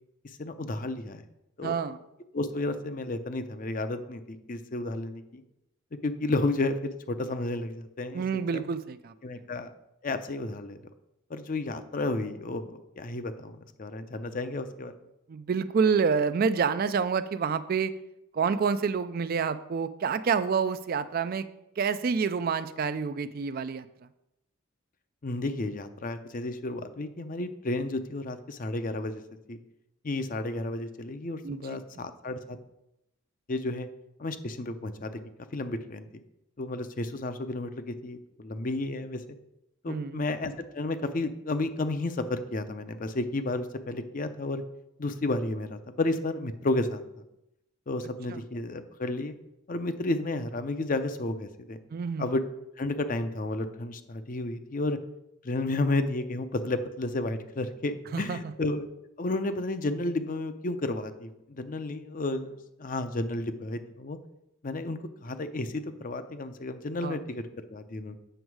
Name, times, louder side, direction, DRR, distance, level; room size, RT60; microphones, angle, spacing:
voice 1, 0.4-1.2 1.6-1.8 2.3-5.4 6.0-8.2 8.5-8.6 9.2-9.7 10.0-10.8 11.3-14.9 25.2-29.2 29.5-29.6 30.0-32.6 33.5-33.9 34.2-35.1 35.5-36.2 36.6-39.2 39.8-44.6 45.0-47.0 47.9-49.3 49.7-51.8 52.2-52.4 52.8-55.0 55.4-58.9 59.2-64.2 64.6-68.2, left 2 dB, 40° left, 10 dB, 0.5 m, -32 dB
voice 2, 1.6-2.0 8.1-9.1 15.3-18.0 18.3-21.5 21.8-23.9 31.4-31.8 39.9-40.2 48.3-48.4 51.9-52.2 58.1-58.4 67.0-67.2, right 6 dB, 45° right, 13 dB, 0.3 m, -28 dB
7.9 x 6.3 x 4.7 m, 0.87 s
head